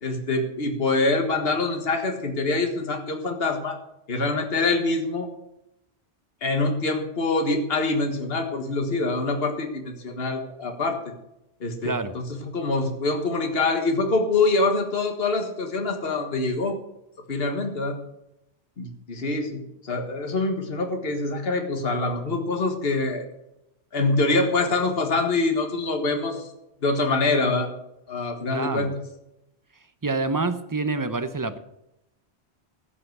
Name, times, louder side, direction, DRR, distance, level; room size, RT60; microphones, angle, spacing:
voice 1, 0.0-3.8 4.1-5.3 6.4-11.0 11.6-16.8 17.3-18.0 18.8-23.2 23.9-26.5 26.8-27.7 28.1-28.9, left 3 dB, 60° left, 4 dB, 1.8 m, -25 dB
voice 2, 11.8-12.1 28.5-28.9 30.0-31.6, right 3 dB, 20° right, 10 dB, 0.8 m, -27 dB
16.0 x 5.8 x 7.9 m, 0.86 s
omnidirectional pair, 1.1 m